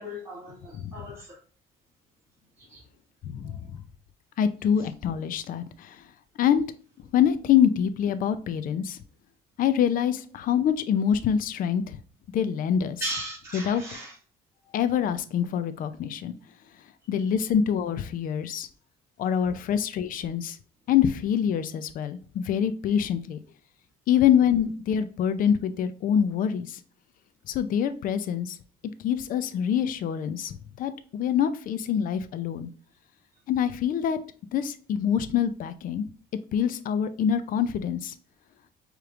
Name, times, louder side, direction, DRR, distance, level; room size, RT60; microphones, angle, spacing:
voice 1, 0.0-1.4 2.6-2.8 3.4-3.6 4.8-4.9 13.0-14.2 14.6-14.7, right 1 dB, 15° right, -8 dB, 2.0 m, -37 dB
voice 2, 3.2-3.8 4.4-6.0 6.4-6.6 7.1-9.0 9.6-12.0 12.3-13.0 13.5-13.8 14.7-16.4 17.1-18.7 19.2-20.6 20.9-23.4 24.1-26.8 27.5-28.6 29.0-32.7 33.5-34.2 34.5-36.1 36.5-38.1, left 8 dB, 55° left, 12 dB, 0.5 m, -25 dB
4.9 x 3.1 x 2.4 m, 0.42 s
cardioid pair, 110°, 17 cm